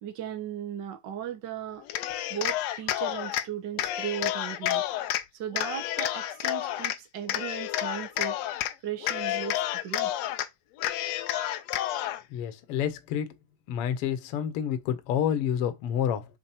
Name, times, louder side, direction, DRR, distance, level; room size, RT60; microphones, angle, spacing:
voice 1, 0.0-1.8 2.3-4.8 5.3-8.4 8.8-10.1, right 9 dB, 65° right, 1.1 m, -37 dB
Cheering, 1.8-3.4 3.8-5.2 5.5-7.0 7.3-8.7 9.0-10.5 10.8-12.2, left 13 dB, 80° left, 1.5 m, -30 dB
voice 2, 12.3-13.3 13.7-16.2, left 9 dB, 60° left, 1.6 m, -29 dB
7.3 x 3.6 x 4.4 m
omnidirectional pair, 3.8 m